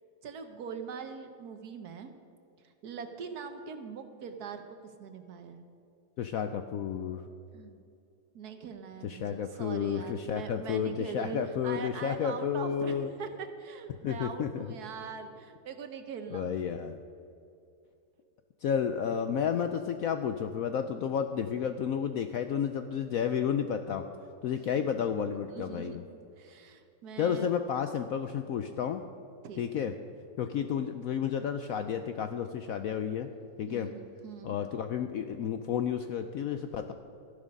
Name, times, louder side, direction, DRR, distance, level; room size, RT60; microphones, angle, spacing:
voice 1, 0.2-2.1 2.6-5.6 7.5-7.8 8.3-16.5 24.8-25.2 25.5-26.0 26.4-27.5 29.4-29.9 33.7-34.6, right 6 dB, 65° right, 7 dB, 1.3 m, -42 dB
voice 2, 6.2-7.2 9.0-13.1 14.0-14.5 16.3-17.0 18.6-24.1 24.4-26.0 27.2-29.0 29.6-29.9 30.4-33.3 33.6-33.9 34.4-36.9, left 8 dB, 70° left, 8 dB, 0.8 m, -31 dB
13.5 x 11.0 x 5.3 m, 2.6 s
omnidirectional pair, 1.9 m